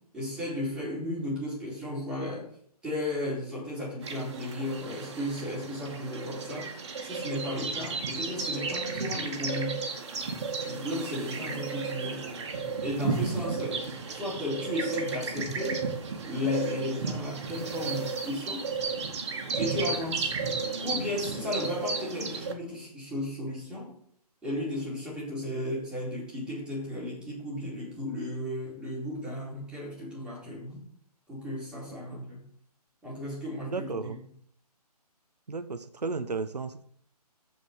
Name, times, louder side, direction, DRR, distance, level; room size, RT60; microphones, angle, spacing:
voice 1, 0.1-2.5 2.8-6.7 7.0-9.8 10.7-12.2 12.8-15.8 16.2-18.7 19.6-20.3 20.8-23.9 24.4-30.8 31.3-32.4 33.0-34.2, left 1 dB, 5° right, -7 dB, 4.4 m, -34 dB
sound 1, 4.0-22.5, right 4 dB, 45° right, 2.2 m, -34 dB
voice 2, 33.7-34.2 35.5-36.8, right 4 dB, 80° right, 9 dB, 1.0 m, -34 dB
14.5 x 5.3 x 6.5 m, 0.65 s
figure-of-eight pair, 145°, 20 cm